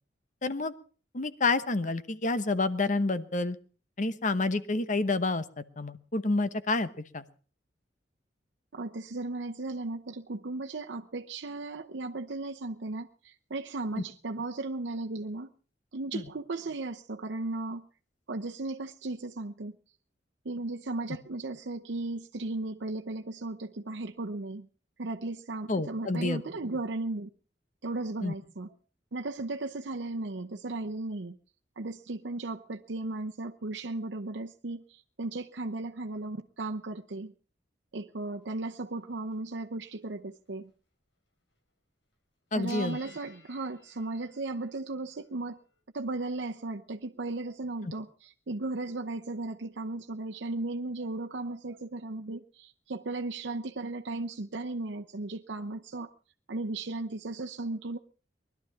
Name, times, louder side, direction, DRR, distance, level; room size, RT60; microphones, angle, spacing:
voice 1, 0.4-0.7 1.1-3.6 4.0-6.9 7.1-7.2 14.0-14.1 16.1-16.2 25.7-26.4 28.2-28.3 42.5-43.0, left 3 dB, 45° left, 13 dB, 1.0 m, -29 dB
voice 2, 8.7-15.5 15.9-17.9 18.3-19.8 20.4-24.7 25.0-27.3 27.8-28.7 29.1-31.4 31.8-37.3 37.9-40.7 42.6-45.6 45.9-56.1 56.5-58.0, right 2 dB, 80° right, 3 dB, 0.8 m, -36 dB
sound 1, 38.3-38.4 39.3-39.4 39.9-40.0 40.5-40.7 42.7-45.8, left 5 dB, 80° left, 5.3 m, -54 dB
20.5 x 12.0 x 5.7 m, 0.40 s
head